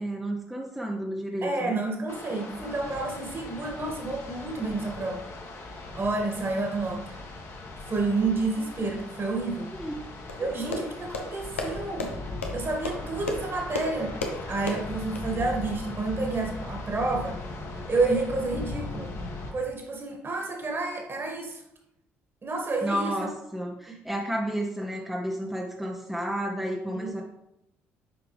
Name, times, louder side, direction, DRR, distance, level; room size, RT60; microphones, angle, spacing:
voice 1, 0.0-1.8 9.8-10.0 10.4-10.9 22.8-27.2, right 1 dB, 5° right, 0 dB, 0.8 m, -32 dB
voice 2, 1.4-5.2 5.9-7.2 7.9-9.7 10.4-12.1 12.5-14.2 14.5-17.4 17.9-19.1 19.5-21.6 22.4-23.3 23.9-24.0 26.9-27.2, right 3 dB, 35° right, 1 dB, 1.9 m, -29 dB
sound 1, 2.1-19.5, left 2 dB, 50° left, 1.4 m, -39 dB
sound 2, 10.3-15.2, left 3 dB, 90° left, 0.6 m, -35 dB
8.1 x 4.8 x 3.3 m, 0.82 s
hypercardioid pair, 50°, 7 cm